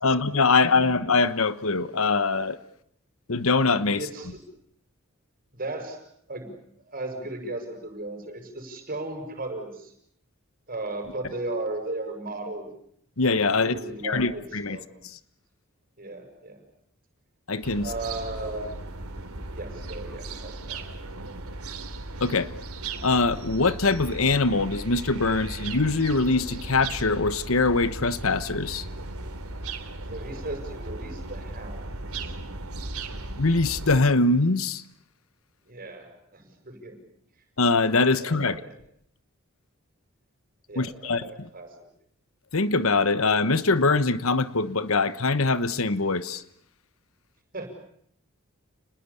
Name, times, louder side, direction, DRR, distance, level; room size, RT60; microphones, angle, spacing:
voice 1, 0.0-2.6 3.3-4.1 13.2-14.8 15.0-15.2 17.5-17.9 22.2-22.5 23.0-28.8 33.4-34.8 37.6-38.6 40.7-41.5 42.5-46.4, left 3 dB, 70° left, 1.2 m, -23 dB
voice 2, 0.5-1.0 4.0-4.4 5.5-6.0 6.3-6.5 6.8-9.9 10.7-12.7 13.6-14.4 14.7-15.0 16.0-16.6 17.8-18.8 19.5-20.9 30.1-31.8 32.2-32.4 35.6-37.0 38.2-38.8 40.7-41.7 47.5-47.7, right 2 dB, 40° right, 6.6 m, -36 dB
sound 1, 17.6-34.0, right 2 dB, 85° right, 3.4 m, -37 dB
29.5 x 20.5 x 8.5 m
head